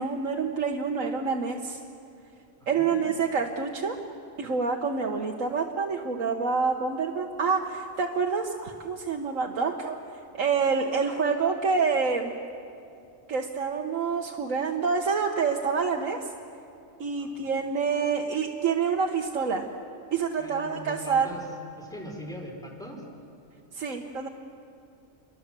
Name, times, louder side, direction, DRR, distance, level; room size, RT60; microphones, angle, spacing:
voice 1, 0.0-1.8 2.7-4.0 4.4-10.0 10.3-12.3 13.3-16.3 17.0-19.7 20.1-21.4 23.7-24.3, right 5 dB, 80° right, 2 dB, 1.7 m, -27 dB
voice 2, 2.6-3.1 17.2-17.5 20.4-21.4 21.8-23.0, equal, 5° left, 0 dB, 4.9 m, -41 dB
28.5 x 23.0 x 7.6 m, 2.7 s
omnidirectional pair, 1.3 m